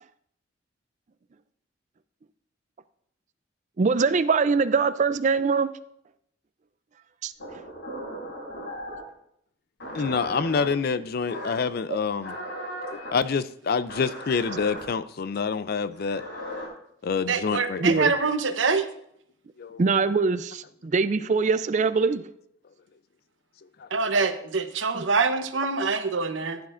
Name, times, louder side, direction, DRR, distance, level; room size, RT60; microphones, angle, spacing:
voice 1, 3.8-5.7 7.2-7.3 11.9-12.0 17.8-18.1 19.8-22.3 24.9-25.0, right 4 dB, 40° right, 0.4 m, -23 dB
sound 1, 7.4-9.1 9.8-10.7 11.3-11.7 12.2-13.1 13.9-14.8 15.9-16.7, equal, 70° left, 3.6 m, -37 dB
voice 2, 9.9-12.3 12.9-16.2 17.0-18.1 19.6-19.8 23.8-23.9, left 5 dB, 55° left, 0.4 m, -27 dB
voice 3, 17.3-18.9 23.9-26.6, right 4 dB, 80° right, 0.9 m, -25 dB
15.5 x 9.5 x 2.5 m
head